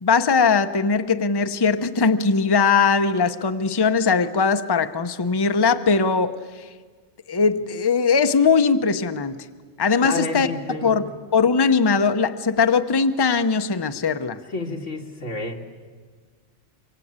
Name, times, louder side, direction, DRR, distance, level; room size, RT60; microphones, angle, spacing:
voice 1, 0.0-6.3 7.3-9.4 9.8-14.4, left 5 dB, 25° left, 9 dB, 0.7 m, -20 dB
voice 2, 10.0-11.1 14.5-15.6, left 2 dB, 90° left, 2 dB, 2.5 m, -30 dB
25.5 x 24.0 x 8.8 m, 1.5 s
omnidirectional pair, 1.2 m